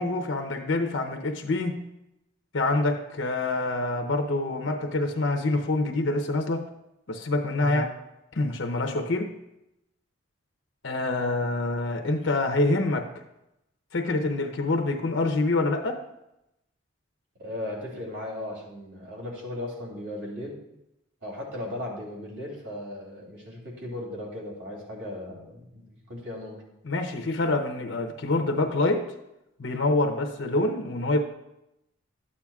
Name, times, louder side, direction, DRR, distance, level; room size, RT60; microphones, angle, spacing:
voice 1, 0.0-1.8 2.5-6.6 7.1-7.9 8.3-9.3 10.8-13.1 13.9-16.0 26.8-29.0 29.6-31.2, left 2 dB, 65° left, 4 dB, 0.7 m, -26 dB
voice 2, 7.5-7.9 17.4-20.6 21.2-26.6, left 1 dB, 65° right, -2 dB, 2.9 m, -37 dB
12.5 x 8.6 x 2.4 m, 0.87 s
head